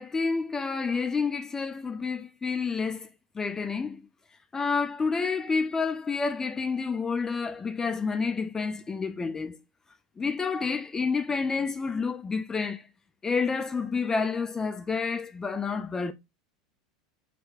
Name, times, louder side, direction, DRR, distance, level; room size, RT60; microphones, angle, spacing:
voice 1, 0.0-3.1 3.4-4.1 4.5-9.6 10.2-12.9 13.2-16.1, left 4 dB, 15° left, 0.4 m, -29 dB
5.4 x 2.4 x 3.4 m
figure-of-eight pair, 80°, 3 cm